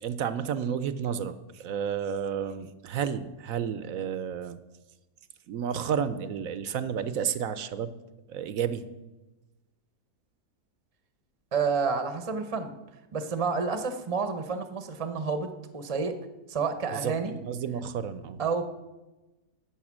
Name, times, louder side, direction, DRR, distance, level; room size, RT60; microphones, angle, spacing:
voice 1, 0.0-4.6 5.5-7.9 8.3-8.8 16.9-18.4, right 8 dB, 65° right, 13 dB, 0.9 m, -31 dB
voice 2, 11.5-12.7 13.1-15.5 15.7-16.2 16.5-17.3 18.4-18.7, right 5 dB, 30° right, 9 dB, 0.6 m, -29 dB
11.5 x 7.9 x 6.1 m, 1.1 s
omnidirectional pair, 1.7 m